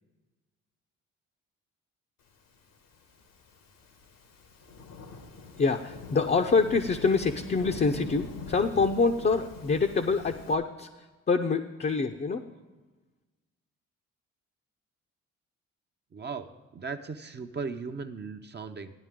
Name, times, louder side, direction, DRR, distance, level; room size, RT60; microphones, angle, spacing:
Thunderstorm / Rain, 2.8-10.5, left 4 dB, 75° left, 1.4 m, -44 dB
voice 1, 5.6-10.9 11.3-12.4, left 4 dB, 30° left, 4 dB, 0.7 m, -26 dB
voice 2, 16.1-18.9, right 5 dB, 30° right, 6 dB, 0.7 m, -37 dB
14.0 x 9.8 x 3.7 m, 1.2 s
hypercardioid pair, 50°, 33 cm